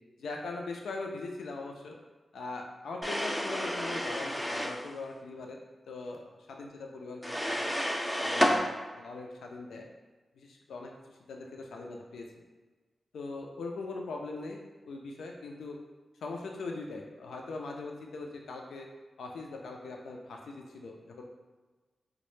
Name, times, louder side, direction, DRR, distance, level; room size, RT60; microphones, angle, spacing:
voice 1, 0.2-2.0 2.3-5.6 5.9-7.7 8.2-9.9 10.3-12.3 13.1-15.8 16.2-18.9 19.2-21.2, left 3 dB, 90° left, 1 dB, 0.3 m, -41 dB
sound 1, 3.0-4.8 7.2-8.6, equal, 10° left, 0.4 m, -30 dB
2.0 x 2.0 x 3.0 m, 1.3 s
cardioid pair, 50°, 0 cm